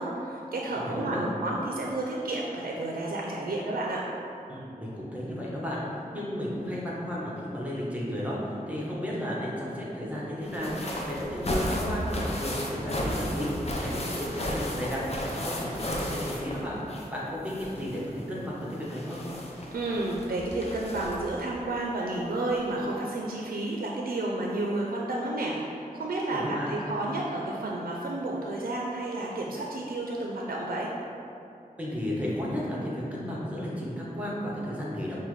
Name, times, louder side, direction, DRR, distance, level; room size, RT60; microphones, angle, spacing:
voice 1, 0.0-4.0 19.7-30.9, right 2 dB, 70° right, -3 dB, 0.4 m, -31 dB
voice 2, 0.8-1.3 4.5-16.8 17.1-19.2 26.3-26.7 31.8-35.2, equal, 10° right, -6 dB, 0.9 m, -33 dB
sound 1, 10.4-17.2 17.4-21.4 22.5-22.6 22.9-23.0, left 1 dB, 45° left, 0.5 m, -34 dB
5.5 x 2.2 x 3.1 m, 2.7 s
wide cardioid pair, 55°, 15 cm